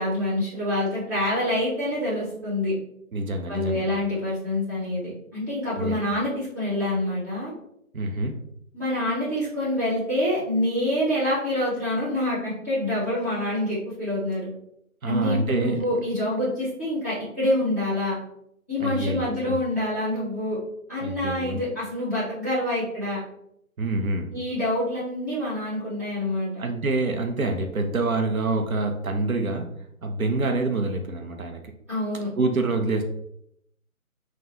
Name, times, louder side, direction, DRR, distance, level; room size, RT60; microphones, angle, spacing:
voice 1, 0.0-2.7 3.5-7.5 8.7-14.5 15.0-18.2 18.7-20.6 20.9-23.2 24.3-26.5 31.9-32.3, left 1 dB, 10° right, -13 dB, 0.7 m, -26 dB
voice 2, 3.1-3.9 5.8-6.0 7.9-8.4 15.0-15.8 18.8-19.6 21.0-21.6 23.8-24.3 26.6-29.7 30.0-31.6 32.4-33.0, right 2 dB, 70° right, 4 dB, 0.7 m, -26 dB
3.4 x 2.3 x 2.7 m, 0.75 s
figure-of-eight pair, 155°, 43 cm